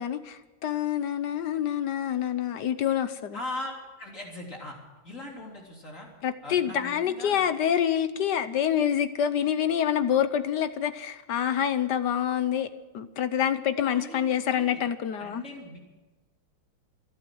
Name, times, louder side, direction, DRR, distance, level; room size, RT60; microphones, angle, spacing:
voice 1, 0.0-3.4 6.2-12.7 12.9-15.4, left 9 dB, 65° left, 12 dB, 1.3 m, -27 dB
voice 2, 3.3-3.7 4.0-4.8 5.0-6.1 6.4-7.4 13.9-14.8 15.2-15.8, left 1 dB, 40° left, -1 dB, 3.8 m, -39 dB
25.5 x 8.6 x 6.2 m, 1.2 s
omnidirectional pair, 2.2 m